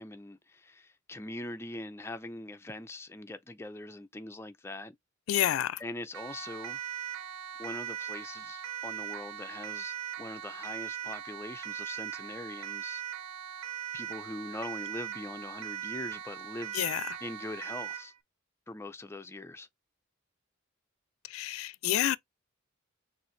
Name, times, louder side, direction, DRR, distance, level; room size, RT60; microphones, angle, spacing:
voice 1, 0.0-5.0 5.8-6.8 7.6-13.0 13.9-16.8 17.2-18.1 18.7-19.7, left 1 dB, 10° left, 0.4 m, -42 dB
voice 2, 5.3-5.8 16.7-17.0 21.3-22.2, left 12 dB, 85° left, 0.3 m, -28 dB
Siren, 6.1-18.1, right 10 dB, 70° right, 0.5 m, -40 dB
6.3 x 2.6 x 3.1 m
head